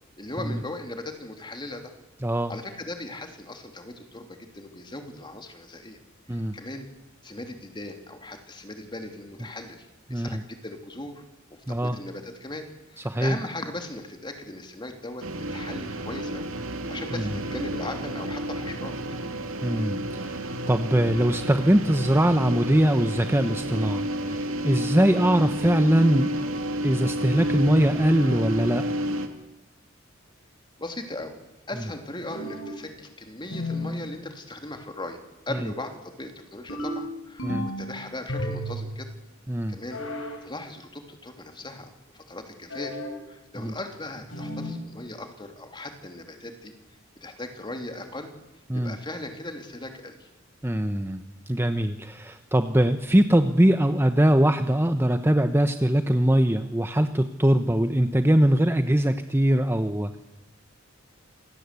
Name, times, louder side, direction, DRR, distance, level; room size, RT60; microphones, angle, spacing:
voice 1, 0.2-1.9 2.5-6.0 6.3-6.9 7.2-11.2 11.7-16.5 16.9-19.0 28.2-28.4 30.8-31.3 31.7-35.2 35.5-39.1 39.7-40.0 40.4-43.0 43.3-46.7 47.2-48.3 48.7-50.3, left 2 dB, 25° left, 5 dB, 3.0 m, -38 dB
voice 2, 2.2-2.5 6.3-6.6 10.1-10.4 11.7-12.0 13.0-13.4 17.1-17.3 19.6-26.3 26.8-28.8 35.5-35.6 37.4-37.7 39.5-39.8 43.6-43.7 48.7-48.9 50.6-60.2, right 1 dB, 10° right, 8 dB, 0.9 m, -22 dB
sound 1, 15.2-29.3, equal, 90° right, 2.4 m, -31 dB
sound 2, 32.3-32.9 33.5-34.0 36.7-37.9 38.3-38.9 39.9-40.4 42.7-43.2 44.3-44.8, equal, 85° left, 5.6 m, -32 dB
27.0 x 17.5 x 8.4 m, 0.99 s
head